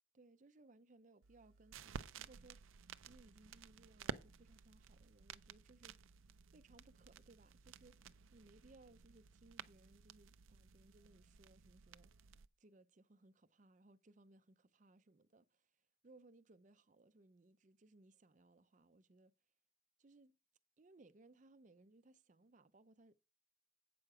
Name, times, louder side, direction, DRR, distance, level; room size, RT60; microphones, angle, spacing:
voice 1, 0.1-6.2 6.5-12.1 12.6-15.7 16.0-19.3 20.0-20.4 20.8-23.2, right 2 dB, 40° right, 0.5 m, -66 dB
sound 1, 1.2-12.5, right 6 dB, 85° right, 0.5 m, -54 dB
8.5 x 6.4 x 4.9 m
head